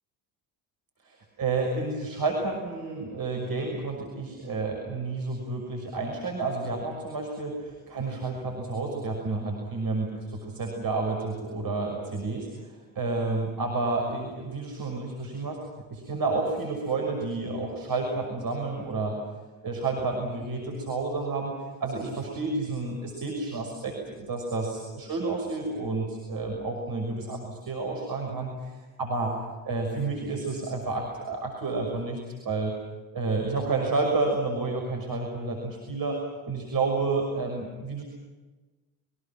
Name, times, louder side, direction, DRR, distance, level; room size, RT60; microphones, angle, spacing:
voice 1, 1.0-15.6 15.9-19.2 19.6-21.5 21.8-29.3 29.6-32.7 33.1-36.2 36.5-38.0, right 3 dB, 45° right, 1 dB, 6.2 m, -30 dB
28.5 x 24.5 x 6.1 m, 1.2 s
hypercardioid pair, 55°, 49 cm